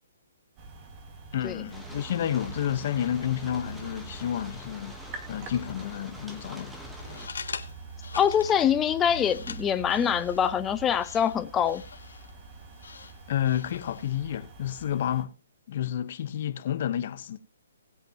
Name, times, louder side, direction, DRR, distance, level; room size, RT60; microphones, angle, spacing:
sound 1, 0.6-15.2, right 4 dB, 25° right, 1.9 m, -44 dB
voice 1, 1.3-5.0 5.3-6.8 13.3-15.3 15.7-17.4, left 10 dB, 45° left, 1.0 m, -30 dB
sound 2, 1.7-7.3, equal, 5° right, 1.3 m, -46 dB
sound 3, 6.9-14.2, left 5 dB, 90° left, 1.6 m, -44 dB
voice 2, 8.2-11.8, left 8 dB, 10° left, 0.7 m, -24 dB
19.0 x 8.3 x 2.9 m
hypercardioid pair, 165°, 0 cm